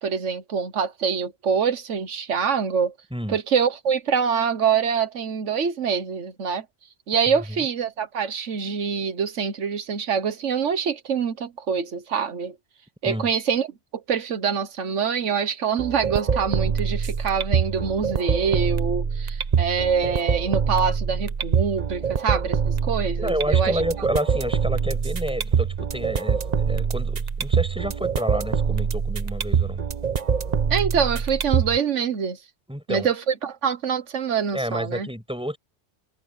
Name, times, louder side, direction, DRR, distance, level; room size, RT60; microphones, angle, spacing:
voice 1, 0.0-2.9 3.3-6.6 7.1-12.5 13.0-13.7 14.1-23.8 30.7-32.4 32.9-35.1, right 6 dB, 90° right, 1.5 m, -25 dB
sound 1, 15.8-31.8, right 6 dB, 40° right, 0.9 m, -24 dB
voice 2, 23.2-29.8 32.7-33.1 34.5-35.6, equal, 5° right, 8.0 m, -29 dB
omnidirectional pair, 1.2 m